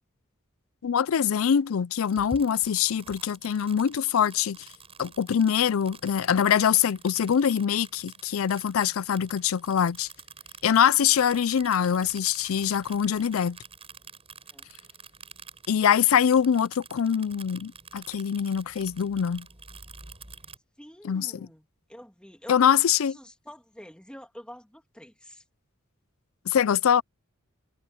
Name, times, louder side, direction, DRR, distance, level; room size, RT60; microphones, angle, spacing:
voice 1, 0.8-4.6 5.0-10.1 10.6-13.6 15.7-19.5 21.1-21.3 22.5-23.1 26.5-27.0, left 8 dB, 75° left, 0.4 m, -23 dB
sound 1, 2.0-20.6, right 4 dB, 30° right, 6.7 m, -48 dB
voice 2, 20.8-22.7 23.1-25.4, equal, 5° left, 2.4 m, -47 dB
head